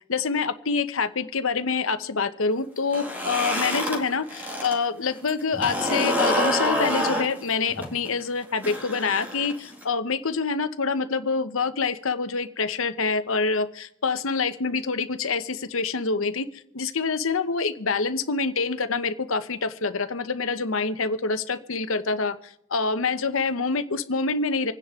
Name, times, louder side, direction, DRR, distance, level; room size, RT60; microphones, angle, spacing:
voice 1, 0.1-16.5 16.7-24.7, left 4 dB, 75° left, 10 dB, 0.9 m, -26 dB
sound 1, 2.8-4.8 5.1-9.8, equal, 10° right, 2.1 m, -27 dB
26.5 x 10.0 x 3.7 m, 0.73 s
head